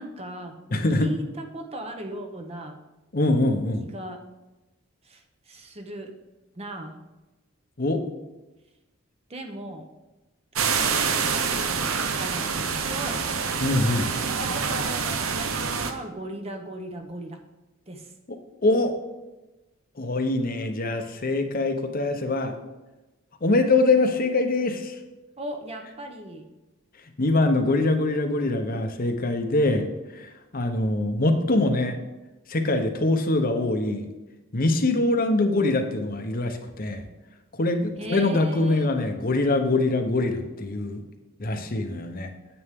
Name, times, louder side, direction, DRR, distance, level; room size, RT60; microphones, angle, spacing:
voice 1, 0.0-2.8 3.8-4.2 5.0-6.1 6.6-7.0 9.3-9.9 11.2-13.3 14.2-17.4 17.9-18.1 25.4-26.5 38.0-38.9, right 1 dB, 30° right, 5 dB, 0.9 m, -38 dB
voice 2, 0.7-1.1 3.1-3.8 7.8-8.0 13.6-14.1 18.6-18.9 20.0-22.5 23.4-25.0 27.2-29.9 30.1-31.9 32.5-34.1 34.5-37.0 37.6-41.0 41.4-42.3, left 2 dB, 45° left, 6 dB, 0.9 m, -23 dB
sound 1, 10.5-15.9, right 5 dB, 80° right, 0.8 m, -26 dB
9.7 x 7.9 x 3.6 m, 1.1 s
head